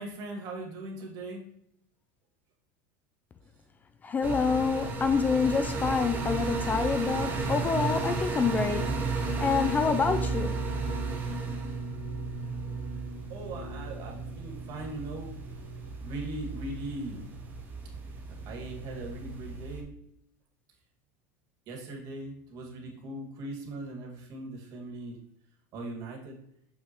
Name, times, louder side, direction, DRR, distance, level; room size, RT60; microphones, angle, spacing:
voice 1, 0.0-1.4 13.3-15.3 16.0-17.3 18.1-18.2 18.5-19.9 21.7-25.2 25.7-26.4, right 2 dB, 45° right, 0 dB, 2.0 m, -39 dB
voice 2, 4.0-8.9 9.4-10.5, left 5 dB, 20° left, 9 dB, 0.3 m, -27 dB
sound 1, 4.2-19.8, right 3 dB, 20° right, 1.1 m, -34 dB
6.4 x 5.7 x 3.0 m, 0.73 s
supercardioid pair, 140°, 9 cm